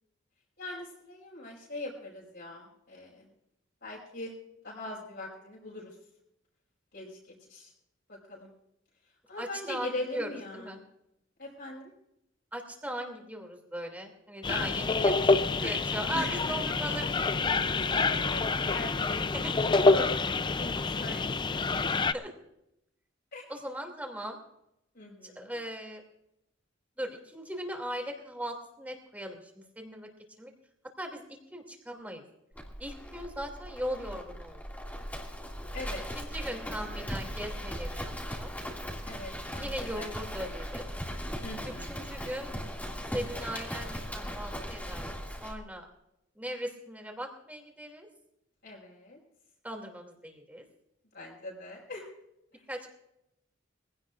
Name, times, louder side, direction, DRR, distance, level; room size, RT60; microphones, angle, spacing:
voice 1, 0.6-3.3 3.8-4.4 4.6-5.9 6.9-7.7 8.1-8.5 9.3-10.8 11.4-11.9 14.4-14.7 15.6-15.7 16.1-16.4 17.8-21.9 23.3-23.5 24.9-25.5 35.7-36.0 36.3-36.6 39.0-40.1 41.4-42.1 48.6-49.2 51.1-52.1 52.5-52.6, left 2 dB, 60° left, -5 dB, 5.2 m, -41 dB
voice 2, 9.4-10.8 12.5-15.3 15.6-17.8 18.3-18.4 19.3-19.6 21.8-22.3 23.5-24.4 25.2-26.0 27.0-30.1 30.4-30.5 31.0-32.2 32.8-34.8 36.1-38.5 39.6-40.9 41.6-42.5 43.1-45.1 45.4-45.9 46.4-48.1 49.6-50.7 52.7-52.9, equal, 10° right, 3 dB, 2.5 m, -39 dB
sound 1, 14.4-22.1, left 3 dB, 25° left, 0.4 m, -27 dB
Livestock farm animals working animals, 32.5-45.6, equal, 10° left, 2.2 m, -38 dB
23.0 x 16.5 x 2.5 m, 0.82 s
head